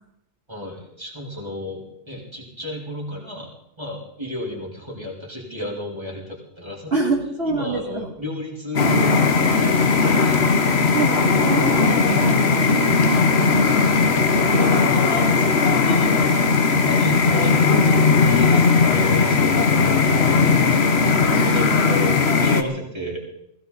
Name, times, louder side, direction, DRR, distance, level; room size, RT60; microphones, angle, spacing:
voice 1, 0.5-3.5 3.8-7.1 7.5-10.4 11.9-12.6 14.7-16.1 16.6-17.6 18.2-23.3, left 1 dB, 20° right, -3 dB, 4.0 m, -32 dB
voice 2, 6.9-8.1 10.9-13.7 14.6-14.9 21.0-21.7, right 4 dB, 55° right, -3 dB, 2.7 m, -27 dB
sound 1, 8.8-22.6, left 4 dB, 55° left, 1.4 m, -18 dB
20.0 x 16.5 x 4.1 m, 0.79 s
omnidirectional pair, 1.3 m